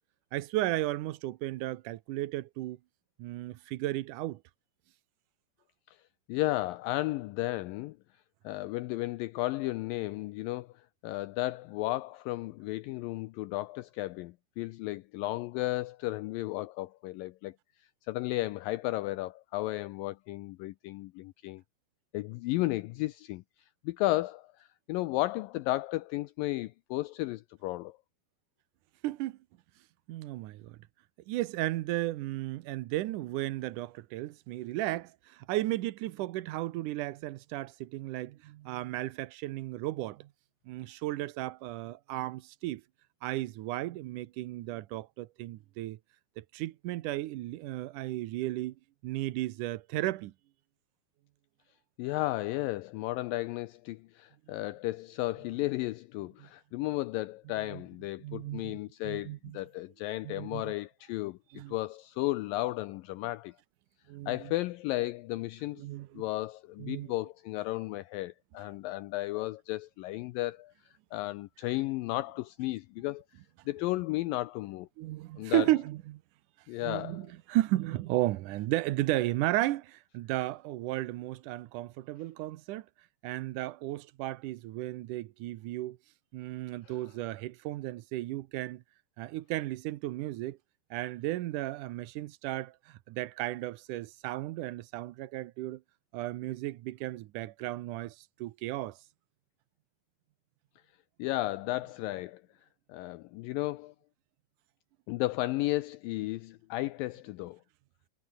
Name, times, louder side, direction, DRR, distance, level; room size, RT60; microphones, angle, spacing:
voice 1, 0.3-2.8 3.2-4.4 29.0-29.4 30.1-30.8 31.3-40.3 40.7-42.8 43.2-46.0 46.4-48.8 49.0-50.3 56.4-56.5 57.7-57.8 58.2-58.8 59.0-59.6 60.2-60.7 61.5-61.8 64.1-64.5 65.8-66.2 66.8-67.1 75.0-76.2 76.8-82.9 83.2-86.0 86.3-88.8 89.2-90.6 90.9-95.8 96.1-99.0, right 16 dB, 75° right, 2.0 m, -34 dB
voice 2, 6.3-8.0 8.4-17.6 18.1-21.6 22.1-23.4 23.8-28.0 52.0-61.4 61.7-63.5 64.3-65.9 66.2-70.7 71.1-73.2 73.7-74.9 75.4-75.7 76.7-77.3 86.8-87.0 101.2-102.4 102.9-103.9 105.1-107.6, left 18 dB, 80° left, 2.1 m, -34 dB
omnidirectional pair, 4.5 m